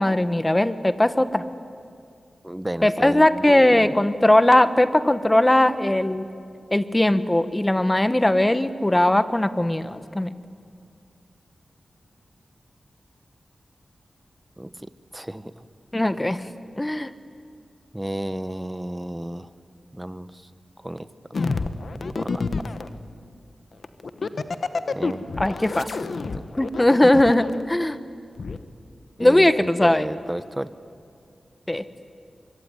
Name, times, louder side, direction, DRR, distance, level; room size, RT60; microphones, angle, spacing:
voice 1, 0.0-1.4 2.8-6.3 6.7-10.3 15.9-16.4 16.8-17.1 25.4-25.9 26.6-28.0 29.2-30.1 31.7-31.8, left 1 dB, 15° left, 12 dB, 1.2 m, -19 dB
voice 2, 2.4-4.0 14.6-15.7 17.9-19.5 19.9-20.5 20.8-21.1 22.1-22.4 24.9-25.2 26.0-26.1 26.3-26.4 29.2-30.7, right 1 dB, 10° right, 13 dB, 1.0 m, -33 dB
sound 1, 21.3-22.9 23.8-27.6 28.4-28.6, left 4 dB, 65° left, 1.2 m, -28 dB
24.5 x 24.0 x 9.8 m, 2.4 s
wide cardioid pair, 75°, 0 cm